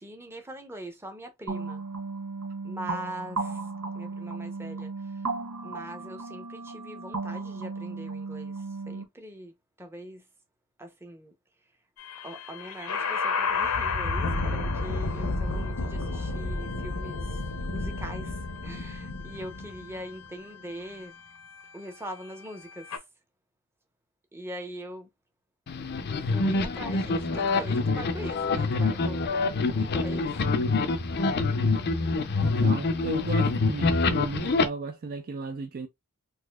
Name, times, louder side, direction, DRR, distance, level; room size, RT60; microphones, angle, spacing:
voice 1, 0.0-1.8 2.6-3.7 3.9-5.3 5.6-10.2 10.8-11.3 12.2-17.4 17.7-21.1 21.7-23.0 24.3-25.1 26.3-30.3, right 1 dB, 10° right, 0.7 m, -42 dB
sound 1, 1.5-9.0, right 3 dB, 85° right, 1.0 m, -35 dB
sound 2, 12.0-23.0, left 3 dB, 85° left, 0.7 m, -31 dB
sound 3, 25.7-34.6, left 3 dB, 50° left, 0.5 m, -26 dB
voice 2, 32.4-35.9, right 3 dB, 40° right, 0.4 m, -35 dB
4.0 x 2.6 x 2.3 m
head